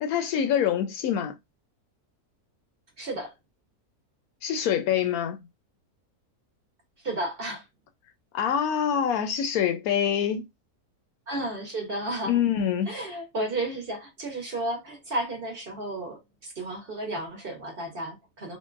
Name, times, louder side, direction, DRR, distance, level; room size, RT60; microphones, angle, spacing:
voice 1, 0.0-1.4 4.4-5.4 8.3-10.4 12.3-12.9, left 9 dB, 75° left, 1.0 m, -25 dB
voice 2, 3.0-3.3 7.0-7.6 11.3-12.4 12.9-18.6, right 1 dB, 45° right, 0.9 m, -33 dB
3.7 x 2.1 x 2.4 m
omnidirectional pair, 1.6 m